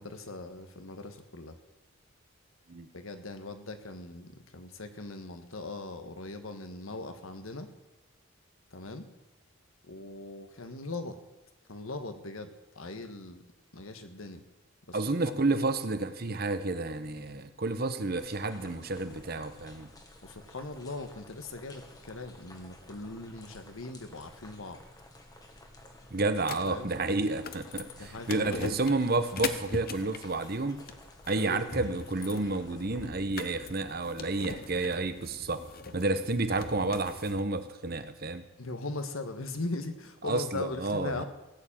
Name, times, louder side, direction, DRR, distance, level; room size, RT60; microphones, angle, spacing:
voice 1, 0.0-1.6 2.9-7.7 8.7-9.1 9.9-11.2 11.7-13.4 13.7-14.4 14.9-15.0 15.2-15.7 20.2-24.8 26.7-26.9 27.9-28.9 31.4-31.7 38.6-41.2, left 2 dB, 80° left, 8 dB, 1.5 m, -40 dB
voice 2, 14.9-19.9 26.1-30.8 31.3-35.6 35.9-38.4 40.2-41.2, right 2 dB, 45° right, 10 dB, 1.0 m, -30 dB
sound 1, 18.2-33.1, left 1 dB, 20° left, 1.5 m, -53 dB
sound 2, 26.4-37.4, left 4 dB, 45° left, 0.9 m, -42 dB
16.5 x 7.3 x 8.9 m, 1.0 s
head